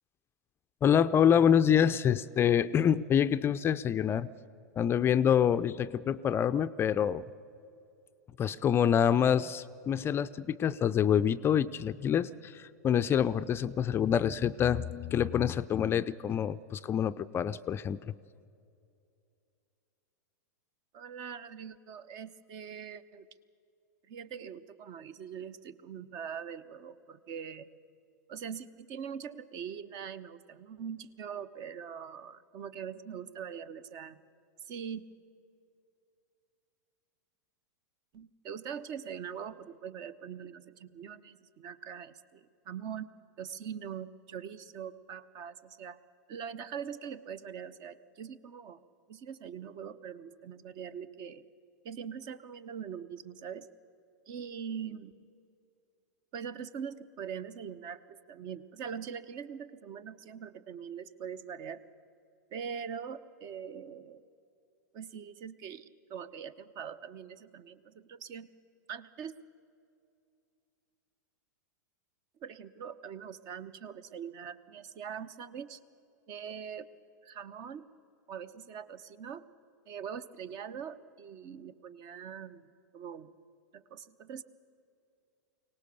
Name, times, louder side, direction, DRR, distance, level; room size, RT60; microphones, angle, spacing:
voice 1, 0.8-4.3 4.8-7.2 8.4-18.0, left 8 dB, 25° left, 12 dB, 0.4 m, -26 dB
voice 2, 20.9-23.3 24.1-27.7 28.3-34.2 34.6-35.0 38.1-43.1 43.4-46.0 46.3-48.8 49.1-51.4 51.8-53.7 54.3-55.1 56.3-61.8 62.5-64.2 64.9-68.5 68.9-69.3 72.4-75.8 76.3-76.9 77.2-77.8 78.3-79.4 79.9-82.7 82.9-83.3 83.7-84.4, right 7 dB, 45° right, 15 dB, 0.9 m, -42 dB
23.0 x 18.5 x 6.9 m, 2.5 s
hypercardioid pair, 105°, 10 cm